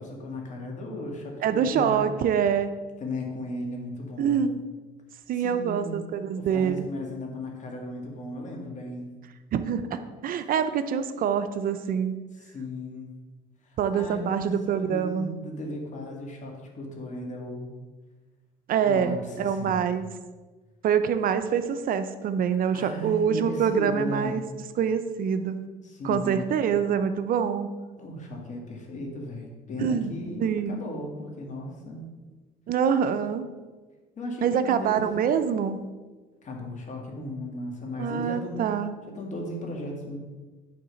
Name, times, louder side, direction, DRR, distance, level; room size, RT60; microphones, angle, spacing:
voice 1, 0.0-2.0 3.0-4.4 5.3-6.0 6.4-9.1 12.3-13.1 13.6-17.7 18.8-19.8 22.7-24.4 25.8-26.5 28.0-32.1 34.2-35.1 36.4-38.7 39.1-40.2, left 1 dB, 45° left, 1 dB, 1.9 m, -36 dB
voice 2, 1.4-2.7 4.2-4.6 5.3-6.8 9.5-12.2 13.8-15.3 18.7-20.1 20.8-24.4 24.8-25.7 26.0-27.7 29.8-30.1 30.4-30.8 32.7-33.4 34.4-35.9 38.0-38.9, right 7 dB, 55° right, 10 dB, 0.6 m, -25 dB
8.5 x 3.9 x 6.3 m, 1.3 s
cardioid pair, 110°, 17 cm